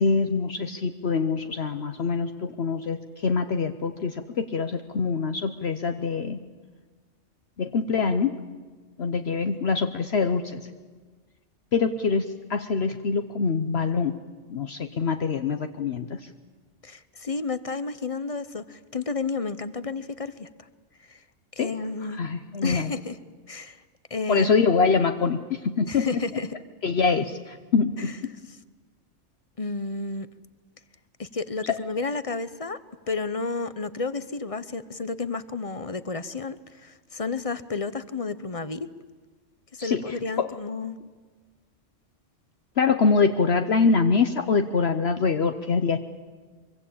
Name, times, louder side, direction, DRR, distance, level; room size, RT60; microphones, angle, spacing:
voice 1, 0.0-6.4 7.6-8.4 9.0-10.6 11.7-14.2 14.5-16.3 21.6-21.7 22.2-22.9 24.3-26.1 26.8-28.3 31.7-31.8 39.8-40.5 42.8-46.0, left 5 dB, 60° left, 7 dB, 1.2 m, -24 dB
voice 2, 16.8-20.5 21.0-21.2 21.6-22.2 22.6-23.2 23.5-23.8 24.1-24.5 25.9-26.5 28.0-28.1 29.6-30.3 31.2-32.8 33.1-38.9 39.7-41.0, left 4 dB, 30° left, 14 dB, 0.8 m, -31 dB
24.5 x 23.5 x 8.6 m, 1.4 s
omnidirectional pair, 1.3 m